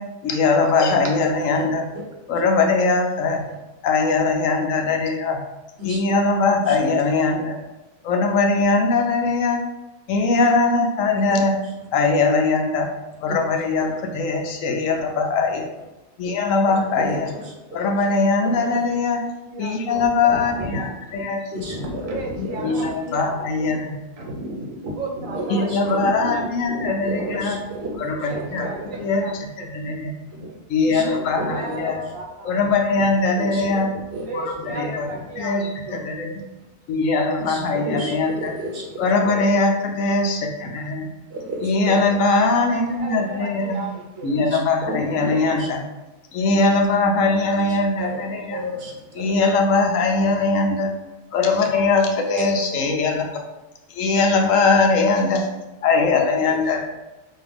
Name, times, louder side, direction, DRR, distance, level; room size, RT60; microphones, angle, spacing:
voice 1, 0.2-1.9 2.3-3.4 3.8-5.4 5.8-7.6 8.0-9.6 10.1-11.5 11.9-12.9 13.2-15.7 16.2-17.3 17.7-19.2 19.6-20.9 21.1-21.4 21.7-21.8 22.6-23.9 25.5-27.6 28.0-28.7 29.0-30.1 30.7-32.0 32.4-33.9 34.3-35.1 35.4-36.3 36.9-38.5 39.0-41.1 41.6-43.8 44.2-45.8 46.3-48.6 49.1-50.9 51.3-53.3 53.9-55.5 55.8-56.9, left 3 dB, 75° left, 3 dB, 1.0 m, -21 dB
voice 2, 16.7-17.1 21.5-22.9 25.3-25.8 27.0-27.9 28.9-29.1 30.9-31.1 31.3-31.9 33.4-33.8 34.1-34.3 34.8-34.9 37.4-38.9 39.2-39.4 41.3-42.0 44.5-44.6 44.9-45.7 48.0-48.2 48.5-49.3 52.3-52.4 56.5-56.6, equal, 55° right, 0 dB, 1.0 m, -32 dB
voice 3, 19.5-21.2 21.6-23.8 24.2-29.3 29.7-29.9 30.3-30.6 30.8-32.6 33.0-33.1 33.5-33.7 34.2-36.1 42.5-44.4, right 2 dB, 75° right, 0 dB, 1.2 m, -33 dB
5.4 x 2.4 x 3.4 m, 1.1 s
omnidirectional pair, 1.4 m